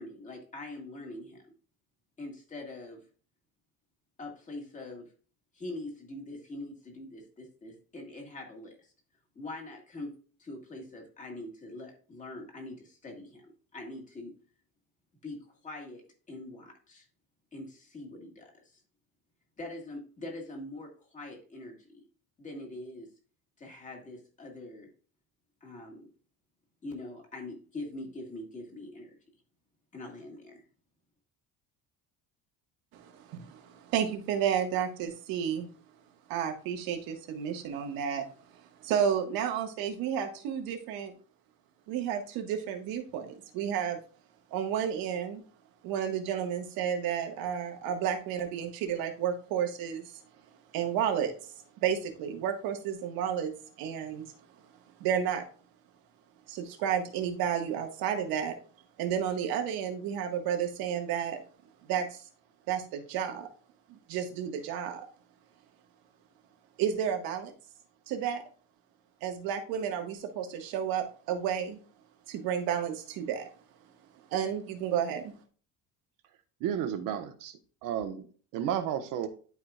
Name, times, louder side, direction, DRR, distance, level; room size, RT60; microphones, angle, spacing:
voice 1, 0.0-1.4 2.2-3.0 4.2-5.1 5.5-8.9 9.4-10.1 10.4-14.3 15.2-17.1 17.5-18.8 19.6-22.0 22.4-23.1 23.6-24.9 25.6-26.1 26.8-29.2 29.9-30.6, left 2 dB, 20° left, 1 dB, 1.8 m, -43 dB
voice 2, 32.9-35.7 36.3-38.2 38.8-41.1 41.9-44.0 44.5-45.4 45.8-50.1 50.7-51.3 51.8-53.5 53.8-54.2 55.0-55.4 56.5-58.6 59.0-61.4 61.9-62.2 62.7-63.5 63.9-65.0 66.8-67.5 68.1-68.4 69.2-71.8 72.3-73.5 74.3-75.3, right 8 dB, 90° right, 5 dB, 1.6 m, -31 dB
voice 3, 76.6-78.2 78.5-79.3, right 9 dB, 65° right, 7 dB, 1.2 m, -32 dB
11.5 x 4.8 x 2.4 m, 0.41 s
cardioid pair, 180°, 35 cm